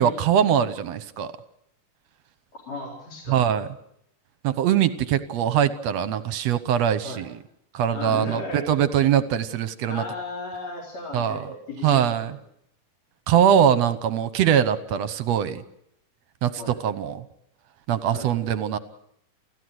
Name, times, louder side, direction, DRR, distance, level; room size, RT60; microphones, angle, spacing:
voice 1, 0.0-1.3 3.3-3.7 4.4-7.3 7.7-10.0 11.1-11.4 11.8-12.3 13.3-15.6 16.4-17.2 17.9-18.8, right 9 dB, 65° right, 13 dB, 1.9 m, -22 dB
voice 2, 2.5-3.4 7.0-7.2 7.9-8.7 9.9-12.0 12.3-12.4 16.5-16.7 18.1-18.3, left 2 dB, 55° left, -2 dB, 5.1 m, -35 dB
29.0 x 15.5 x 8.0 m, 0.76 s
omnidirectional pair, 3.7 m